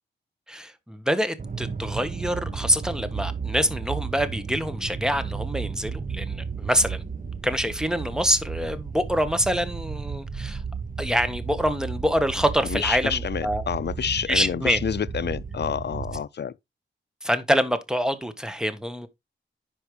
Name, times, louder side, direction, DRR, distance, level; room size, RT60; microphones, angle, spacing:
voice 1, 0.5-7.0 7.4-10.6 11.0-13.6 14.3-14.8 17.2-19.1, equal, 5° right, 1.4 m, -25 dB
sound 1, 1.4-16.2, right 5 dB, 40° right, 1.0 m, -33 dB
voice 2, 12.7-16.5, left 8 dB, 55° left, 0.5 m, -28 dB
10.0 x 5.4 x 3.3 m
cardioid pair, 70°, 20 cm